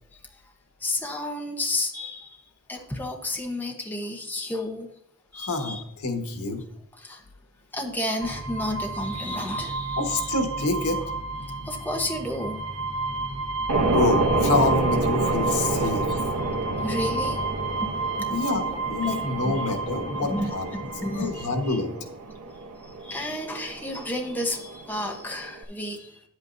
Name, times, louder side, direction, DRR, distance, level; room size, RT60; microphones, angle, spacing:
voice 1, 0.8-2.4 2.7-4.9 5.3-5.8 7.0-7.2 7.7-10.3 11.6-12.6 14.3-14.4 16.4-16.5 16.8-17.5 17.8-17.9 18.2-18.4 18.7-18.8 19.0-19.6 20.3-21.8 23.0-26.2, left 1 dB, 10° left, 1 dB, 0.9 m, -32 dB
voice 2, 5.3-6.6 10.0-11.0 13.9-16.4 18.3-21.9, left 3 dB, 85° left, 4 dB, 1.4 m, -27 dB
sound 1, 8.2-21.6, right 3 dB, 50° right, 2.4 m, -31 dB
sound 2, 13.7-25.6, right 3 dB, 90° right, 0.9 m, -29 dB
9.7 x 8.3 x 2.7 m, 0.73 s
head